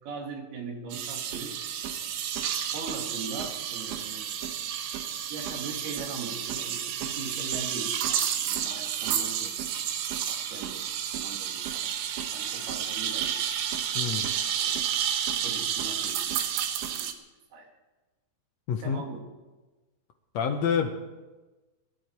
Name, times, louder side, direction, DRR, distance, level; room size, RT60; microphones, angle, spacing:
voice 1, 0.0-1.6 2.7-4.4 5.3-9.5 10.3-13.4 14.3-14.7 15.4-16.4 16.8-17.1 17.5-17.7 18.8-19.2, right 4 dB, 70° right, 2 dB, 4.0 m, -40 dB
sound 1, 0.9-17.1, right 9 dB, 90° right, 3.3 m, -31 dB
voice 2, 13.9-14.3 18.7-19.0 20.3-20.9, left 7 dB, 85° left, 3 dB, 1.5 m, -27 dB
27.0 x 11.5 x 4.6 m, 1.2 s
omnidirectional pair, 4.8 m